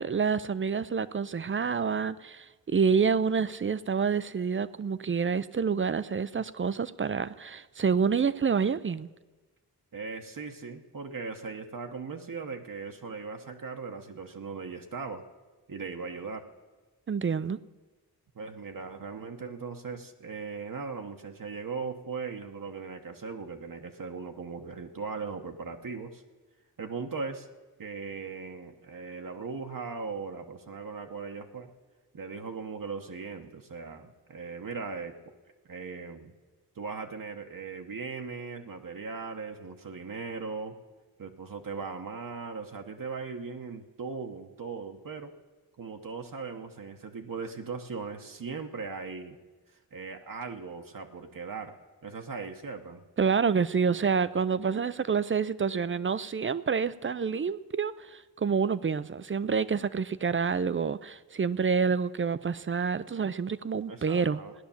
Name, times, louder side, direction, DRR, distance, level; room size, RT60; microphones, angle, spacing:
voice 1, 0.0-9.1 17.1-17.6 53.2-64.4, right 6 dB, 35° right, 16 dB, 0.4 m, -28 dB
voice 2, 9.9-15.2 15.7-16.5 18.3-26.2 26.8-27.5 27.8-31.7 32.1-35.3 35.7-36.3 36.8-40.7 41.2-45.3 45.8-49.4 49.9-51.8 52.0-53.0 63.9-64.5, right 4 dB, 60° right, 4 dB, 1.0 m, -38 dB
16.0 x 10.0 x 7.1 m, 1.3 s
wide cardioid pair, 85°, 38 cm